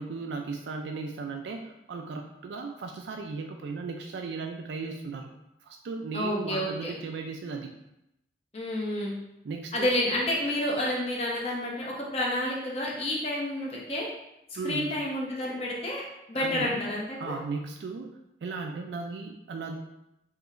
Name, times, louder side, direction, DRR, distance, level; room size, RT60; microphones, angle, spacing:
voice 1, 0.0-5.3 5.6-7.7 9.4-9.9 14.6-14.9 16.4-16.7 17.2-18.1 18.4-19.8, right 4 dB, 85° right, 3 dB, 0.3 m, -36 dB
voice 2, 6.1-6.9 8.5-9.1 9.7-14.1 14.6-16.0 16.3-17.4, left 1 dB, 35° left, -3 dB, 0.8 m, -29 dB
4.9 x 2.8 x 2.5 m, 0.85 s
head